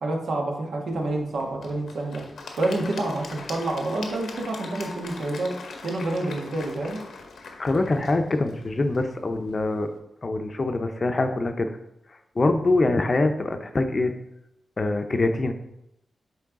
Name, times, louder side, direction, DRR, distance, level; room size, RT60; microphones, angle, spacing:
voice 1, 0.0-2.2 2.6-5.5 5.8-7.0, right 2 dB, 80° right, 0 dB, 1.2 m, -28 dB
Applause / Crowd, 0.9-10.0, left 3 dB, 85° left, 0.9 m, -42 dB
voice 2, 7.6-9.9 10.2-11.7 12.4-14.1 14.8-15.5, left 2 dB, 40° left, 7 dB, 0.6 m, -24 dB
8.5 x 3.2 x 3.7 m, 0.85 s
cardioid pair, 80°, 0 cm